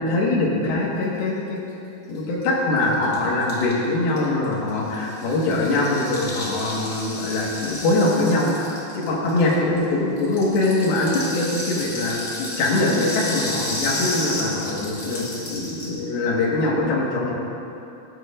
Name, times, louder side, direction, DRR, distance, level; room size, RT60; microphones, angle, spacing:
voice 1, 0.0-1.6 2.1-17.4, left 2 dB, 70° left, -5 dB, 3.5 m, -23 dB
Rattle (instrument), 2.1-2.2 2.4-2.5 2.7-9.8 10.2-16.0, left 1 dB, 40° left, 1.1 m, -32 dB
16.5 x 9.3 x 2.6 m, 2.8 s
omnidirectional pair, 4.7 m